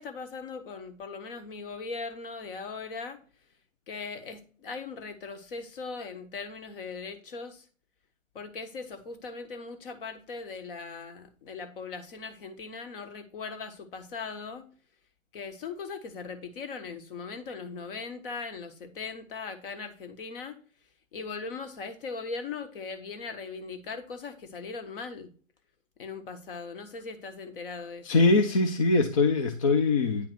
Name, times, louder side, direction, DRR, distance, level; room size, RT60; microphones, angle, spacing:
voice 1, 0.0-3.2 3.9-7.7 8.3-14.7 15.3-20.6 21.1-25.3 26.0-28.2, left 4 dB, 45° left, 1.3 m, -39 dB
voice 2, 28.0-30.3, left 3 dB, 25° left, 0.5 m, -23 dB
9.3 x 3.5 x 6.1 m
hypercardioid pair, 140°, 40 cm